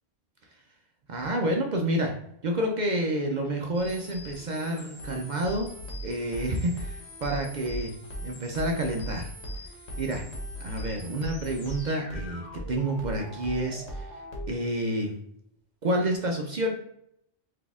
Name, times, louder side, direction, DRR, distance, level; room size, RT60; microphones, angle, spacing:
voice 1, 1.1-2.2 2.4-5.7 6.0-8.0 8.2-9.3 10.0-10.2 10.6-14.2 14.5-15.2 15.8-16.7, right 1 dB, 60° right, 2 dB, 0.5 m, -29 dB
sound 1, 3.7-14.5, equal, 60° left, 1.3 m, -39 dB
sound 2, 5.8-6.0 6.5-6.6 7.1-8.1 8.6-9.8 10.1-11.1 11.4-11.6, left 4 dB, 75° left, 1.1 m, -42 dB
4.0 x 2.8 x 3.4 m, 0.74 s
omnidirectional pair, 1.3 m